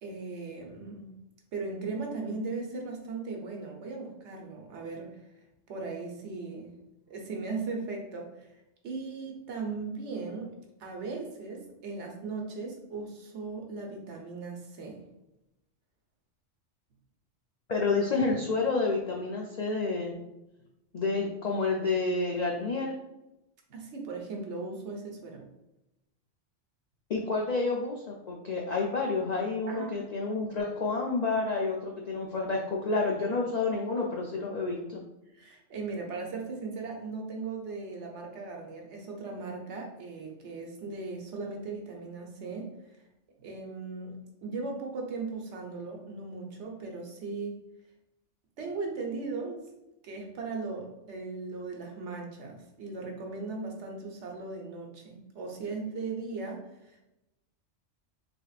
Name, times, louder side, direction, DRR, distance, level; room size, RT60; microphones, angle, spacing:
voice 1, 0.0-1.1 1.5-5.2 5.7-6.7 7.1-8.5 8.8-10.5 10.8-15.0 23.7-25.5 29.7-29.9 35.3-42.7 43.4-47.6 48.6-49.6 50.0-57.0, right 3 dB, 65° right, 1 dB, 1.1 m, -38 dB
voice 2, 17.7-20.1 20.9-22.9 27.1-35.0, left 3 dB, 60° left, -1 dB, 0.4 m, -29 dB
4.2 x 3.4 x 2.4 m, 0.92 s
omnidirectional pair, 1.3 m